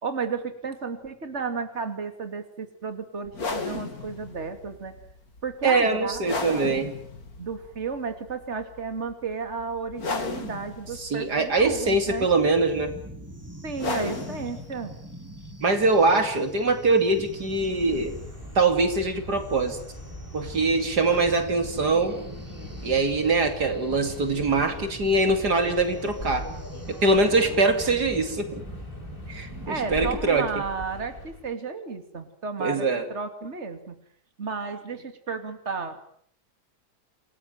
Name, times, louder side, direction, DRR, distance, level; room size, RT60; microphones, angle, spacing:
voice 1, 0.0-4.9 5.4-6.7 7.4-12.3 13.6-14.9 29.7-34.0 34.4-36.0, right 5 dB, 40° right, 8 dB, 2.9 m, -33 dB
sound 1, 3.3-18.6, left 3 dB, 60° left, 3.2 m, -37 dB
voice 2, 5.6-6.9 11.0-13.0 15.6-18.2 18.5-19.8 20.3-22.2 22.8-26.5 26.9-28.6 29.3-30.5 32.6-33.0, right 3 dB, 70° right, 7 dB, 3.3 m, -23 dB
sound 2, 11.6-30.1, equal, 10° right, 2.8 m, -42 dB
Subway metro underground, 17.1-31.5, left 1 dB, 30° left, 5.2 m, -41 dB
28.0 x 20.0 x 9.3 m, 0.64 s
omnidirectional pair, 1.8 m